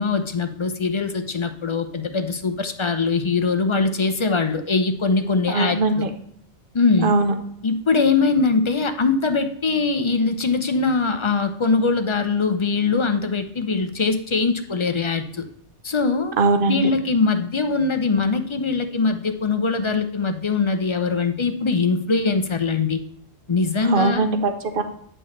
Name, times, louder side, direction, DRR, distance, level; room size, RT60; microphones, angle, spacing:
voice 1, 0.0-6.0 6.7-7.1 7.6-15.5 15.8-16.3 16.7-23.0 23.5-24.3, left 4 dB, 35° left, 8 dB, 0.5 m, -22 dB
voice 2, 5.5-6.1 7.0-7.3 16.4-16.9 23.8-24.8, right 3 dB, 55° right, 7 dB, 1.0 m, -20 dB
9.0 x 6.1 x 3.2 m, 0.66 s
omnidirectional pair, 1.2 m